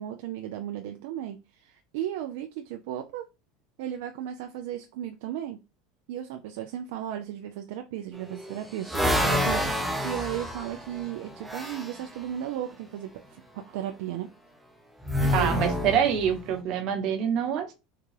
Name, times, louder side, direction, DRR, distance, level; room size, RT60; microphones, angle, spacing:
voice 1, 0.0-3.2 3.8-5.6 6.1-14.3 15.2-15.6, right 11 dB, 75° right, 0.3 m, -35 dB
sound 1, 8.1-12.0 15.0-16.5, left 1 dB, 5° right, 0.7 m, -28 dB
voice 2, 15.3-17.7, right 8 dB, 55° right, 0.9 m, -26 dB
3.7 x 2.2 x 3.2 m
hypercardioid pair, 95°, 0 cm